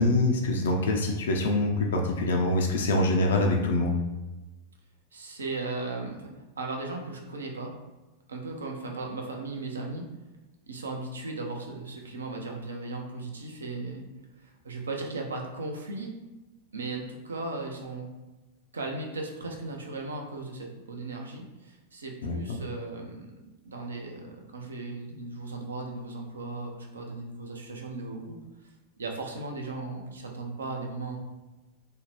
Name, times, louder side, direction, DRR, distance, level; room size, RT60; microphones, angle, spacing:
voice 1, 0.0-4.0 22.2-22.4, left 2 dB, 60° left, 2 dB, 0.3 m, -24 dB
voice 2, 5.1-6.3 6.6-7.7 8.3-10.1 10.7-14.1 14.4-16.2 16.7-18.1 18.7-28.4 29.0-31.2, right 3 dB, 70° right, 2 dB, 0.4 m, -37 dB
2.6 x 2.0 x 3.0 m, 1.1 s
figure-of-eight pair, 90°, 0 cm